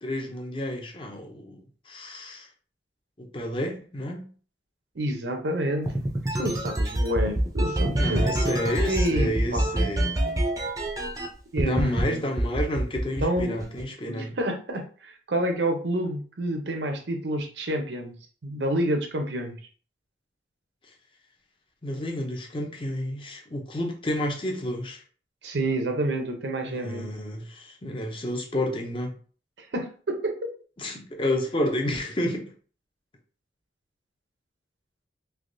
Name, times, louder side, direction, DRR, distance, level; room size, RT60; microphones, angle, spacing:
voice 1, 0.0-2.5 3.2-4.3 8.0-10.2 11.6-14.4 21.8-25.0 26.6-29.2 30.8-32.5, left 1 dB, 30° left, 0.6 m, -30 dB
voice 2, 5.0-8.3 8.9-9.7 11.5-12.2 13.2-13.6 14.0-18.1 18.4-19.6 25.4-27.1 29.6-30.4, right 1 dB, 75° right, 0.7 m, -29 dB
sound 1, 5.9-11.3 11.6-12.0 12.4-13.8, right 1 dB, 20° right, 0.5 m, -25 dB
3.4 x 2.9 x 2.6 m
head